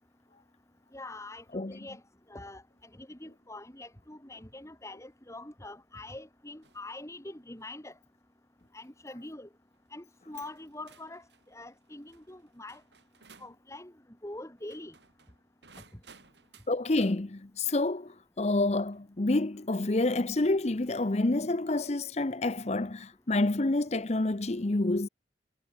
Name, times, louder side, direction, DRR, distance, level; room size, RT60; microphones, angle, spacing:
voice 1, 0.9-2.0 2.3-8.0 8.7-9.5 9.9-12.8 13.4-13.9 14.2-14.9, left 2 dB, 15° left, 2.3 m, -44 dB
sound 1, 6.6-6.9 7.4-7.8 8.6-8.9 9.7-9.8 10.3-13.6 14.6-17.2 18.9-19.0 20.3-21.0, right 5 dB, 80° right, 5.7 m, -59 dB
voice 2, 16.7-25.1, left 2 dB, 40° left, 0.8 m, -28 dB
head